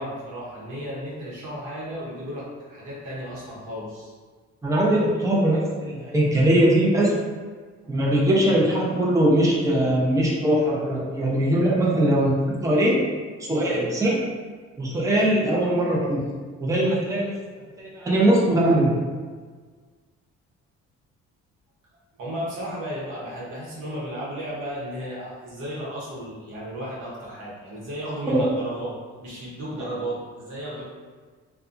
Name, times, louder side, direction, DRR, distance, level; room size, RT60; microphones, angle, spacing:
voice 1, 0.0-4.1 22.2-30.8, equal, 90° right, -6 dB, 1.0 m, -34 dB
voice 2, 4.6-7.1 7.9-13.0 13.5-14.2 14.8-16.2 16.6-17.4 17.8-19.0 28.3-28.4, right 1 dB, 10° right, -4 dB, 0.6 m, -21 dB
2.6 x 2.3 x 2.4 m, 1.5 s
cardioid pair, 90°, 30 cm